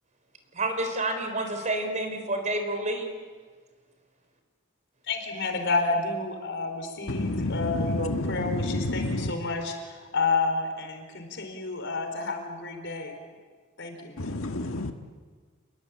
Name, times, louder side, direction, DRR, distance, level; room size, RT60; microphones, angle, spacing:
voice 1, 0.5-3.1, right 2 dB, 35° right, 6 dB, 4.2 m, -29 dB
voice 2, 5.1-13.2 13.8-14.2, left 3 dB, 60° left, 5 dB, 4.6 m, -30 dB
voice 3, 7.1-9.3 14.2-14.9, left 2 dB, 80° left, 5 dB, 1.6 m, -29 dB
29.0 x 21.5 x 8.8 m, 1.5 s
head